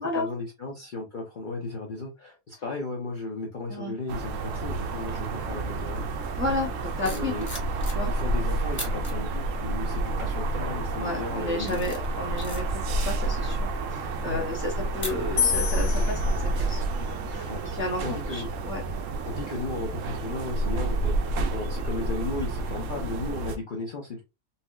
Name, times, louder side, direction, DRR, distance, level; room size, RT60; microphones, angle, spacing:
voice 1, 0.0-6.5 7.0-7.5 8.1-12.2 14.2-14.5 17.5-17.7 18.0-18.5 19.2-24.2, left 3 dB, 55° left, 0 dB, 0.5 m, -35 dB
sound 1, 4.1-23.6, right 2 dB, 70° right, 0.9 m, -29 dB
voice 2, 6.3-7.3 7.9-8.1 9.9-10.0 11.0-18.8, left 2 dB, 15° right, -3 dB, 0.4 m, -33 dB
sound 2, 7.0-8.3 8.7-9.1 9.8-10.1 10.6-11.0 11.4-15.7 16.0-16.2, left 1 dB, 10° left, 0.8 m, -40 dB
sound 3, 15.4-18.6, left 7 dB, 80° left, 1.4 m, -32 dB
4.1 x 2.0 x 2.3 m, 0.26 s
omnidirectional pair, 1.5 m